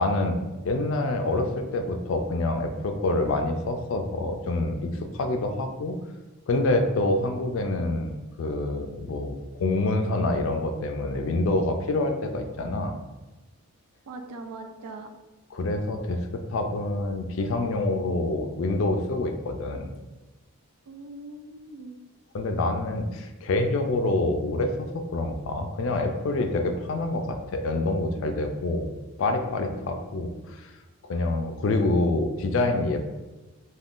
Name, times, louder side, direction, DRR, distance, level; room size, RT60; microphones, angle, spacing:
voice 1, 0.0-6.0 6.5-13.0 15.5-19.9 22.3-28.9 29.2-30.7 31.1-33.0, left 2 dB, 60° left, 5 dB, 0.3 m, -26 dB
voice 2, 14.1-15.1 20.9-22.0, right 2 dB, 85° right, 5 dB, 0.4 m, -41 dB
3.5 x 2.2 x 2.4 m, 1.1 s
head